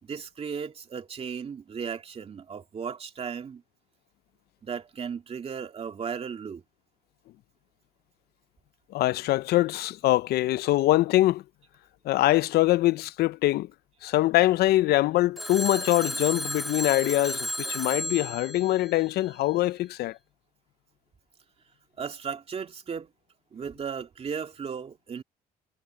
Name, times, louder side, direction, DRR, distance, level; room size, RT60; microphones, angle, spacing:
voice 1, 0.0-3.6 4.6-6.6 22.0-23.1 23.5-25.2, right 6 dB, 35° right, 2.5 m, -35 dB
voice 2, 8.9-11.4 12.0-13.7 14.0-20.2, left 16 dB, 70° left, 0.5 m, -23 dB
Telephone, 15.4-19.6, equal, ahead, 2.3 m, -34 dB
cardioid pair, 110°, 17 cm